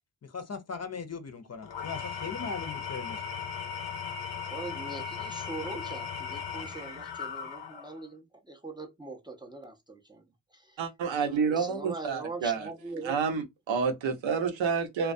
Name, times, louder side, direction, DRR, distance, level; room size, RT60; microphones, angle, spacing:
voice 1, 0.2-3.2, left 5 dB, 35° left, 0.6 m, -39 dB
Engine / Tools, 1.6-8.1, left 7 dB, 90° left, 0.8 m, -37 dB
voice 2, 4.5-10.2 10.5-10.8 11.3-13.2, right 3 dB, 10° right, 0.5 m, -42 dB
voice 3, 10.8-12.7 13.0-15.1, right 6 dB, 80° right, 0.8 m, -29 dB
2.3 x 2.2 x 2.5 m
cardioid pair, 55°, 45 cm